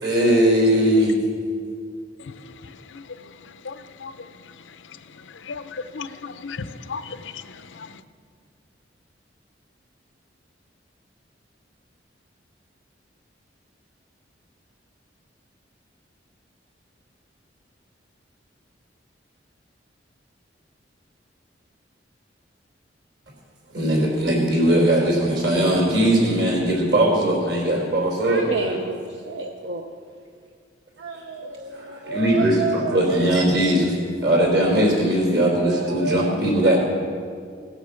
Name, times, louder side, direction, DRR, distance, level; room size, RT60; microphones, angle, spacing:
voice 1, 0.0-1.1 23.7-28.8 31.7-33.9 34.2-36.8, right 1 dB, 60° right, -1 dB, 4.1 m, -19 dB
voice 2, 5.5-7.2 7.8-7.9, left 4 dB, 85° left, 11 dB, 0.6 m, -34 dB
voice 3, 28.2-29.9 31.0-33.4 35.5-36.5, right 3 dB, 80° right, 3 dB, 0.8 m, -30 dB
17.5 x 8.0 x 7.1 m, 2.2 s
head